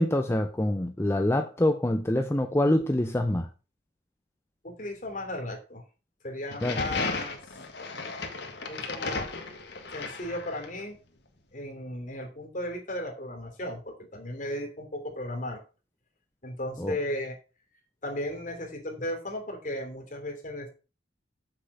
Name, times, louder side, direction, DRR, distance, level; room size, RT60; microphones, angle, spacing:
voice 1, 0.0-3.5 6.6-6.8 16.8-17.0, left 1 dB, 15° left, 0.6 m, -25 dB
voice 2, 4.6-5.8 6.2-7.4 8.7-9.3 9.9-11.0 11.5-15.6 16.4-17.4 18.0-20.7, left 1 dB, 45° left, 3.0 m, -35 dB
sound 1, 6.5-10.8, left 3 dB, 65° left, 1.7 m, -35 dB
7.9 x 6.6 x 5.4 m
head